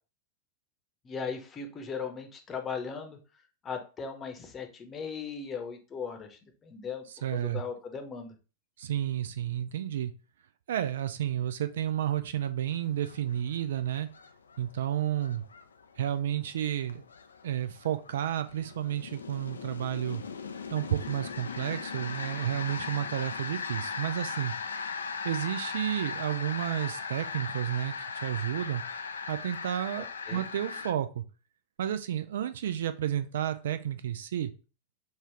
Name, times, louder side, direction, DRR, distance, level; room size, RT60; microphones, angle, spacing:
voice 1, 1.0-3.2 3.6-8.3 29.9-30.4, left 5 dB, 25° left, 4 dB, 0.8 m, -38 dB
voice 2, 7.2-7.6 8.8-10.1 10.7-14.1 14.6-15.4 16.0-17.0 17.4-20.2 20.7-24.5 25.2-27.9 28.2-28.8 29.3-30.1 30.3-31.2 31.8-34.5, right 11 dB, 60° right, 10 dB, 0.3 m, -31 dB
sound 1, 12.9-30.9, left 5 dB, 70° left, 0.3 m, -39 dB
5.4 x 2.4 x 3.0 m, 0.33 s
figure-of-eight pair, 90°, 0 cm